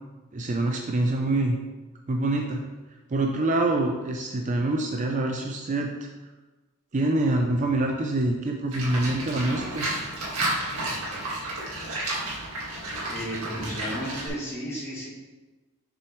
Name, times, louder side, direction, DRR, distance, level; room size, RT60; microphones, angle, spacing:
voice 1, 0.3-1.6 2.1-2.6 3.1-5.9 6.9-9.9, right 2 dB, 35° right, 2 dB, 0.5 m, -25 dB
Livestock farm animals working animals, 8.7-14.3, right 1 dB, 75° right, 1.9 m, -31 dB
voice 2, 13.1-15.1, equal, 15° left, -8 dB, 2.0 m, -33 dB
6.7 x 6.1 x 3.1 m, 1.2 s
head